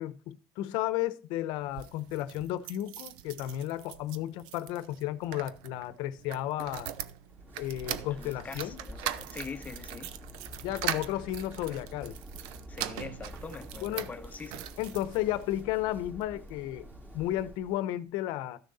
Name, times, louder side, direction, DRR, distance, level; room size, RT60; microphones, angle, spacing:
voice 1, 0.0-6.9 7.6-8.8 10.6-12.2 13.8-14.1 14.8-16.9 17.1-18.6, left 14 dB, 75° left, 0.9 m, -33 dB
sound 1, 1.6-15.6 16.2-17.1 17.4-17.5 17.7-17.8, right 11 dB, 80° right, 0.7 m, -41 dB
sound 2, 7.3-17.8, equal, 20° right, 3.3 m, -48 dB
voice 2, 8.1-10.1 11.9-12.0 12.7-14.6, left 5 dB, 20° left, 0.9 m, -43 dB
13.5 x 6.5 x 4.2 m
cardioid pair, 130°, 8 cm